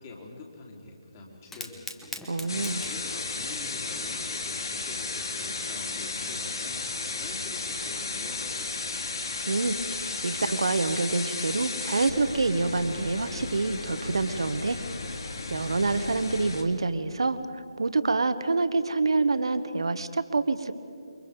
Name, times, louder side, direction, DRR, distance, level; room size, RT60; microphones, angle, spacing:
voice 1, 0.0-2.0 2.8-6.8 7.1-9.1, left 3 dB, 25° left, -1 dB, 3.9 m, -45 dB
Fire, 1.4-10.2, left 3 dB, 5° left, 1.0 m, -48 dB
voice 2, 2.3-2.8 9.5-14.8 15.5-17.4 17.8-20.7, right 3 dB, 60° right, 11 dB, 1.4 m, -27 dB
sound 1, 2.5-16.6, left 3 dB, 50° left, 2.4 m, -34 dB
28.5 x 23.0 x 5.4 m, 2.5 s
figure-of-eight pair, 150°, 3 cm